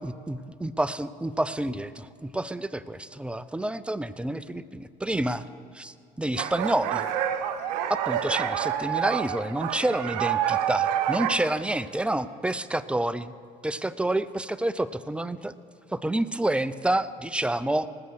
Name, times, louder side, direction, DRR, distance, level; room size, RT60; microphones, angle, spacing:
voice 1, 0.0-5.5 5.7-7.1 7.9-13.3 13.6-15.5 15.9-17.9, right 1 dB, 5° right, 15 dB, 0.5 m, -28 dB
sound 1, 6.4-11.4, right 10 dB, 80° right, 0.8 m, -28 dB
19.0 x 6.9 x 6.4 m, 2.3 s
hypercardioid pair, 65°, 21 cm